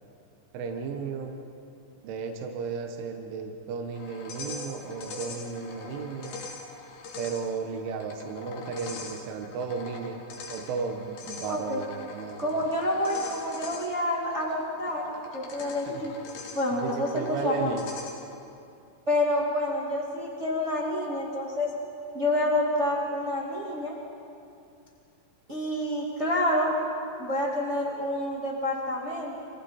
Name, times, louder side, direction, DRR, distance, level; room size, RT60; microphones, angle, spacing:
voice 1, 0.5-1.4 2.0-6.4 7.2-10.2 10.5-12.5 15.9-16.2 16.7-17.8, right 5 dB, 75° right, 3 dB, 3.7 m, -34 dB
sound 1, 3.9-18.4, left 4 dB, 55° left, 3.6 m, -42 dB
voice 2, 11.5-11.8 12.4-15.0 15.3-16.1 16.5-17.7 19.1-21.7 22.1-23.9 25.5-26.7 27.2-29.3, left 1 dB, 55° right, -3 dB, 0.7 m, -28 dB
29.5 x 26.0 x 4.4 m, 2.5 s
omnidirectional pair, 5.9 m